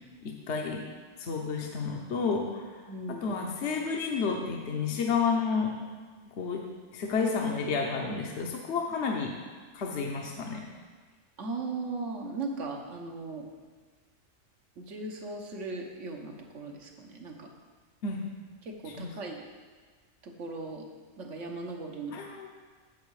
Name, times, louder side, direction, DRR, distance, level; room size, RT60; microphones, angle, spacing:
voice 1, 0.2-0.8 1.2-2.6 3.1-5.7 6.4-6.6 6.9-9.3 9.7-10.6 18.0-18.2 19.0-19.1 22.1-22.5, left 5 dB, 65° left, 1 dB, 1.1 m, -30 dB
voice 2, 2.9-3.3 11.4-13.4 14.8-17.5 18.6-19.4 20.2-20.8 21.2-22.2, right 3 dB, 70° right, 1 dB, 1.4 m, -38 dB
8.4 x 7.6 x 4.8 m, 1.4 s
omnidirectional pair, 1.3 m